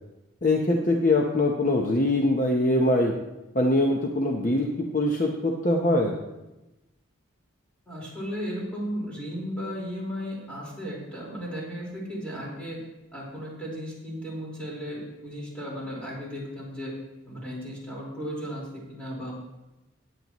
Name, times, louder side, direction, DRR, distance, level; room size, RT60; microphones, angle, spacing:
voice 1, 0.4-3.1 3.5-6.2, left 1 dB, 40° left, 1 dB, 0.8 m, -23 dB
voice 2, 7.8-12.8 13.1-16.9 17.3-19.3, equal, 5° left, -6 dB, 4.4 m, -35 dB
17.5 x 9.1 x 3.0 m, 0.99 s
head